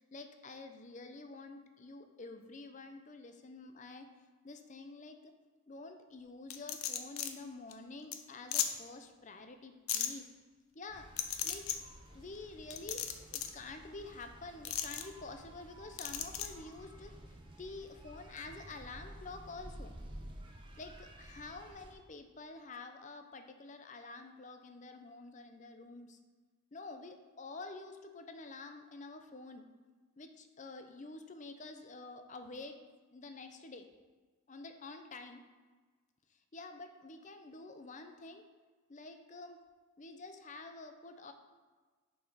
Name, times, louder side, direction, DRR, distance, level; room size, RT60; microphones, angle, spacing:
voice 1, 0.0-4.1 4.4-5.3 5.7-10.3 10.7-11.1 11.4-11.7 12.1-17.1 17.6-19.9 20.7-26.2 26.7-29.7 30.2-32.8 33.1-33.9 34.5-35.4 36.3-38.4 38.9-39.6 40.0-41.3, left 3 dB, 35° left, 7 dB, 0.6 m, -48 dB
sound 1, 6.5-7.3 7.7-7.8 8.1-8.2 8.5-8.7 9.9-10.1 11.2-11.8 12.7-13.5 14.6-15.0 16.0-16.5, left 10 dB, 90° left, 0.7 m, -35 dB
sound 2, 10.9-21.9, right 1 dB, 25° right, 0.9 m, -52 dB
7.0 x 5.0 x 5.0 m, 1.4 s
head